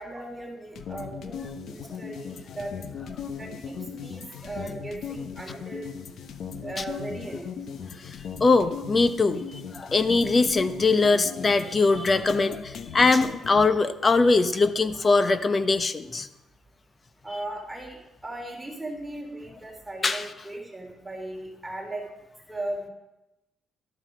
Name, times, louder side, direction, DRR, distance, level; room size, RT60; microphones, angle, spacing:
voice 1, 0.0-1.4 1.7-2.7 3.4-6.0 6.6-7.5 17.2-22.0 22.5-22.9, right 1 dB, 10° right, 0 dB, 3.3 m, -37 dB
sound 1, 0.8-13.7, left 6 dB, 70° left, 1.0 m, -38 dB
voice 2, 8.0-16.3 20.0-20.3, left 3 dB, 35° left, 10 dB, 1.0 m, -22 dB
12.5 x 12.0 x 5.1 m, 0.98 s
cardioid pair, 90°, 0 cm